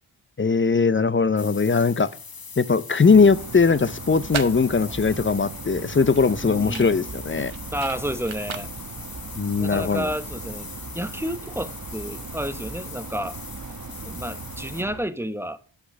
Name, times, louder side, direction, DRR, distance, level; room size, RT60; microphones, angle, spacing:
voice 1, 0.4-2.1 2.6-7.5 9.4-10.1, left 4 dB, 25° left, 0.6 m, -20 dB
sound 1, 1.4-14.8, left 5 dB, 45° left, 1.2 m, -41 dB
sound 2, 3.0-15.0, right 4 dB, 40° right, 1.1 m, -38 dB
sound 3, 4.0-10.1, right 7 dB, 75° right, 1.0 m, -38 dB
voice 2, 6.4-6.9 7.7-8.7 9.6-10.7 10.9-13.3 14.0-15.6, equal, 5° right, 0.8 m, -30 dB
7.8 x 6.1 x 6.5 m
cardioid pair, 45°, 47 cm